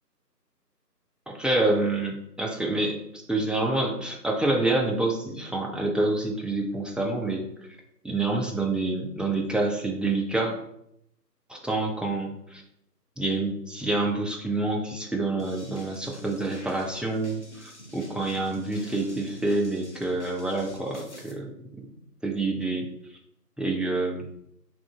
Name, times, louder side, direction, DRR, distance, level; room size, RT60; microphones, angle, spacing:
voice 1, 1.3-3.0 3.3-7.5 8.0-10.6 11.5-12.6 13.2-21.5 22.2-22.9 23.6-24.3, right 2 dB, ahead, 0 dB, 0.3 m, -27 dB
sound 1, 15.4-21.3, equal, 45° left, 0.6 m, -46 dB
3.3 x 2.5 x 3.4 m, 0.76 s
figure-of-eight pair, 165°, 49 cm